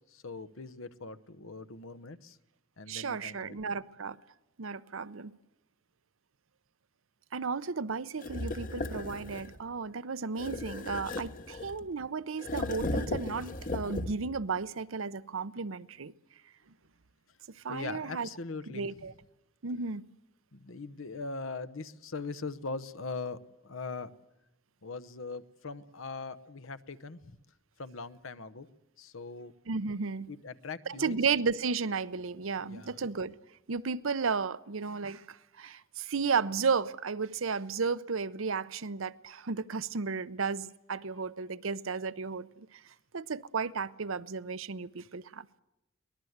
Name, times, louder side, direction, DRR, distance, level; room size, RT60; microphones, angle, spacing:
voice 1, 0.1-2.4 2.8-3.8 17.7-19.1 20.5-23.4 23.6-24.1 24.8-27.2 27.8-28.7 29.0-29.5 30.3-31.3 32.6-33.0, left 4 dB, 75° left, 1.0 m, -41 dB
voice 2, 2.9-4.2 4.6-5.3 7.3-16.1 17.5-18.3 18.7-19.1 19.6-20.0 29.7-30.3 30.9-33.3 33.7-42.8 43.1-45.6, right 5 dB, 75° right, 0.7 m, -34 dB
sound 1, 8.2-9.6 10.4-11.9 12.4-14.4, left 2 dB, 45° left, 1.2 m, -36 dB
23.5 x 19.0 x 8.0 m
head